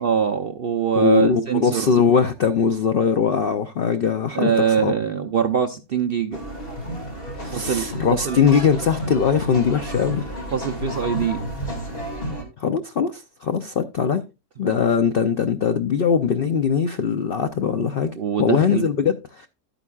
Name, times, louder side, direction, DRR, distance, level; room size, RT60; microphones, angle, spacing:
voice 1, 0.0-1.9 4.3-6.4 7.5-8.4 10.5-11.4 14.6-14.7 18.1-18.9, right 7 dB, 60° right, 0.6 m, -23 dB
voice 2, 1.0-4.5 4.8-4.9 7.4-10.2 12.6-14.2 14.6-18.1 18.4-19.5, left 6 dB, 65° left, 0.5 m, -21 dB
sound 1, 6.3-12.4, equal, 35° left, 2.5 m, -31 dB
11.0 x 9.1 x 2.3 m
omnidirectional pair, 1.7 m